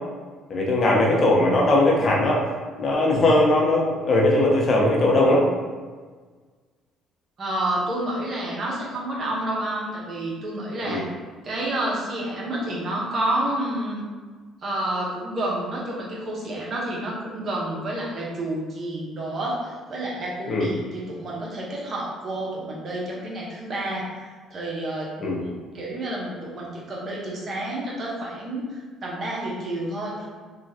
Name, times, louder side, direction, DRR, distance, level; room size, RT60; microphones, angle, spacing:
voice 1, 0.5-2.4 2.8-5.5 10.9-11.0 20.5-20.7 25.2-25.4, left 1 dB, 45° left, -2 dB, 0.7 m, -19 dB
voice 2, 7.4-11.0 11.4-14.0 14.6-30.3, right 1 dB, 50° right, -4 dB, 0.9 m, -29 dB
3.1 x 2.4 x 2.7 m, 1.5 s
supercardioid pair, 70°, 0 cm